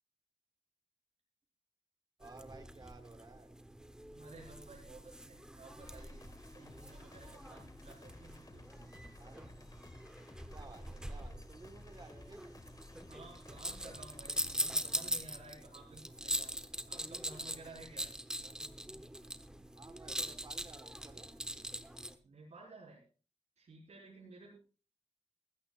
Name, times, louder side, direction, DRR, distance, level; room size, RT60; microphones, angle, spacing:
sound 1, 2.2-22.1, right 1 dB, 5° right, 1.0 m, -43 dB
voice 1, 2.2-3.5 9.2-9.5 10.5-12.7 18.4-18.7 19.7-21.3, right 3 dB, 40° right, 7 dB, 1.5 m, -55 dB
voice 2, 4.1-6.2 6.5-8.9 13.1-16.5 16.8-18.1 22.2-23.0 23.6-24.6, right 3 dB, 85° right, -4 dB, 5.0 m, -54 dB
sound 2, 5.8-14.5, left 2 dB, 35° left, 1.6 m, -56 dB
20.0 x 15.5 x 2.5 m, 0.35 s
wide cardioid pair, 115°, 11 cm